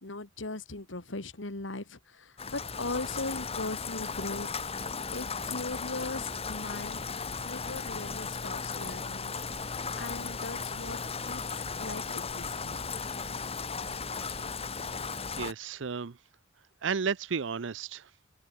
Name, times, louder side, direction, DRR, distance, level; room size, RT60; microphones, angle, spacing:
voice 1, 0.0-4.5 5.1-7.0 7.4-12.8, left 2 dB, 75° left, 2.1 m, -39 dB
Rain, 2.4-15.5, left 5 dB, 30° left, 1.9 m, -36 dB
sound 1, 4.0-15.2, right 4 dB, 25° right, 2.3 m, -56 dB
voice 2, 15.4-16.2 16.8-18.1, right 5 dB, 70° right, 0.6 m, -33 dB
open air
head